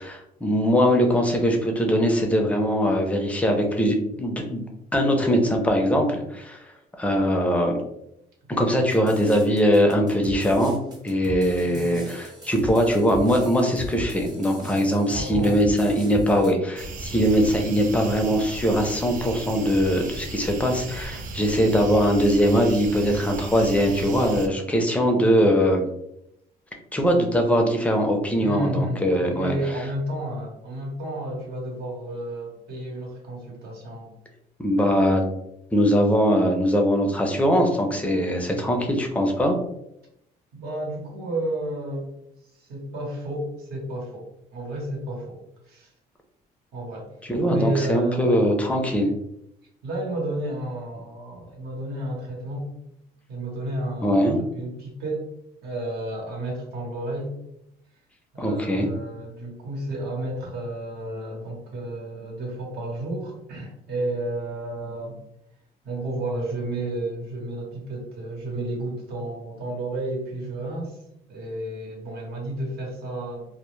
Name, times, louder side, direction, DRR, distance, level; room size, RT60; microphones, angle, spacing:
voice 1, 0.0-4.6 4.9-7.8 8.5-10.8 11.0-25.8 26.9-29.5 34.6-35.3 35.7-39.6 47.3-49.1 54.0-54.4 58.4-58.9, equal, 10° left, 2 dB, 0.5 m, -21 dB
sound 1, 8.9-16.5, left 1 dB, 25° right, 0.8 m, -38 dB
voice 2, 11.3-12.1 15.1-15.6 28.4-29.0 29.3-34.1 38.5-38.8 40.5-42.1 42.5-45.9 46.7-47.1 47.4-48.4 49.8-52.7 53.3-55.3 55.6-57.3 58.3-65.2 65.8-71.0 71.3-73.5, right 1 dB, 70° right, -1 dB, 0.9 m, -32 dB
sound 2, 16.8-24.5, right 2 dB, 50° right, 0.4 m, -35 dB
2.1 x 2.1 x 3.0 m, 0.79 s
cardioid pair, 110°, 17 cm